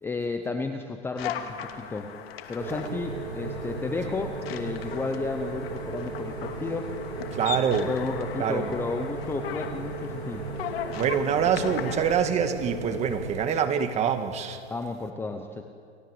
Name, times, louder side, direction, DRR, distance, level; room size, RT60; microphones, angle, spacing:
voice 1, 0.0-2.1 2.5-6.9 7.8-10.5 14.7-15.6, left 3 dB, 5° left, 6 dB, 0.8 m, -32 dB
sound 1, 1.2-12.1, left 9 dB, 65° left, 2.4 m, -38 dB
sound 2, 2.6-13.4, right 4 dB, 70° right, 4.7 m, -36 dB
voice 2, 7.3-7.9 8.4-8.7 10.9-14.6, right 7 dB, 20° right, 7 dB, 1.8 m, -25 dB
30.0 x 17.5 x 8.0 m, 2.4 s
supercardioid pair, 150°, 33 cm